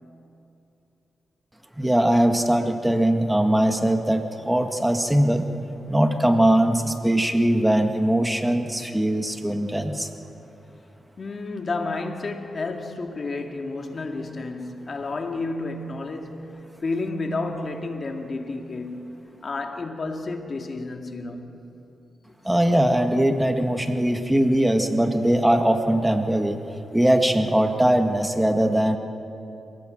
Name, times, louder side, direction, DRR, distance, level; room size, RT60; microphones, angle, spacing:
voice 1, 1.8-5.5 5.9-10.1 22.4-26.6 26.9-29.0, right 1 dB, 10° right, 1.7 m, -21 dB
voice 2, 11.2-21.6, left 3 dB, 50° left, 2.2 m, -31 dB
26.5 x 18.0 x 7.7 m
supercardioid pair, 50°, 0 cm